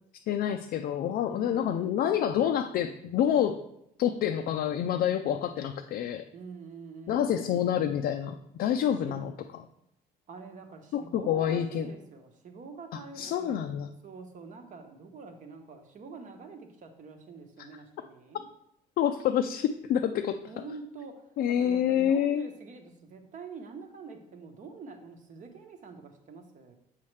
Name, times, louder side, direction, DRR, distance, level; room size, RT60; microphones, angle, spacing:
voice 1, 0.3-3.6 4.0-6.2 7.1-9.3 10.9-11.9 12.9-13.9 19.0-20.4 21.4-22.4, left 9 dB, 65° left, 6 dB, 0.4 m, -27 dB
voice 2, 1.3-2.0 6.3-7.9 9.0-9.2 10.3-13.6 14.0-18.4 20.4-26.8, right 4 dB, 50° right, 5 dB, 1.0 m, -46 dB
7.3 x 5.6 x 3.2 m, 0.78 s
cardioid pair, 110°, 17 cm